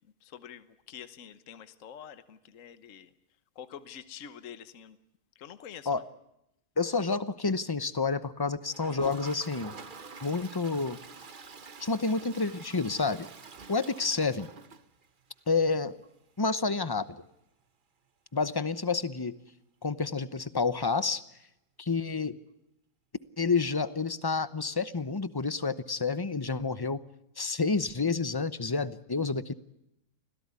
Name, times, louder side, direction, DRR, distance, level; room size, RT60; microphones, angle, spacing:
voice 1, 0.2-3.1 3.5-5.0 5.3-6.0, left 9 dB, 55° left, 12 dB, 1.4 m, -47 dB
voice 2, 6.8-9.8 10.2-11.0 11.8-13.3 13.7-14.5 15.5-16.0 16.4-17.1 18.3-19.3 19.8-21.2 21.8-22.3 23.4-27.0 27.4-29.5, left 4 dB, 20° left, 15 dB, 0.6 m, -29 dB
Toilet flush, 8.7-15.4 15.7-15.8 16.0-16.1 16.4-16.5 19.0-19.1 20.4-20.5, right 4 dB, 35° right, 1.1 m, -46 dB
25.5 x 16.5 x 9.7 m, 0.84 s
omnidirectional pair, 1.7 m